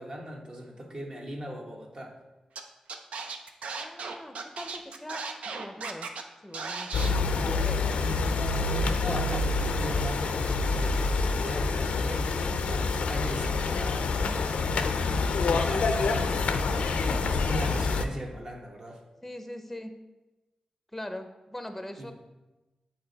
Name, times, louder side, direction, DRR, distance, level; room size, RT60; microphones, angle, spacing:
voice 1, 0.0-2.2 9.0-14.2 15.4-19.0 22.0-22.1, equal, 40° right, 0 dB, 1.2 m, -39 dB
Scratching (performance technique), 2.6-2.7 2.9-6.2 6.5-7.1, right 4 dB, 90° right, 0.5 m, -36 dB
voice 2, 3.7-5.2 5.5-6.1 6.4-8.9 19.2-19.9 20.9-22.1, left 1 dB, 5° left, 7 dB, 0.6 m, -41 dB
sound 1, 6.9-18.0, left 4 dB, 90° left, 0.4 m, -27 dB
7.8 x 4.2 x 4.0 m, 1.1 s
wide cardioid pair, 90°, 2 cm